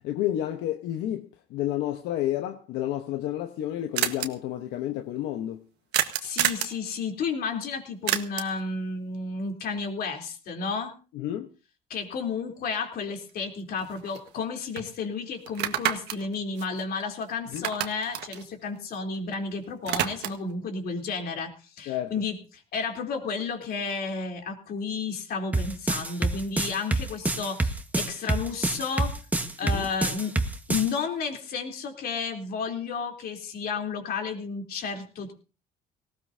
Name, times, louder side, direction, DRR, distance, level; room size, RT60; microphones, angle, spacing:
voice 1, 0.0-5.6 11.1-11.5 17.5-17.7 21.9-22.1 29.6-29.9, left 12 dB, 90° left, 1.1 m, -30 dB
sound 1, 3.0-3.1 3.3-3.4 3.6-3.7 4.0-4.3 5.9-6.8 8.1-8.6 12.8-12.9 13.3-14.4 14.8-14.9 15.5-17.2 17.5-19.4 19.6-20.5, right 12 dB, 90° right, 1.5 m, -29 dB
voice 2, 6.2-10.9 11.9-22.4 22.7-29.2 29.6-30.4 30.7-35.3, left 5 dB, 65° left, 3.5 m, -32 dB
sound 2, 25.5-30.9, right 2 dB, 10° right, 1.5 m, -26 dB
19.0 x 17.5 x 2.8 m
cardioid pair, 110°, 17 cm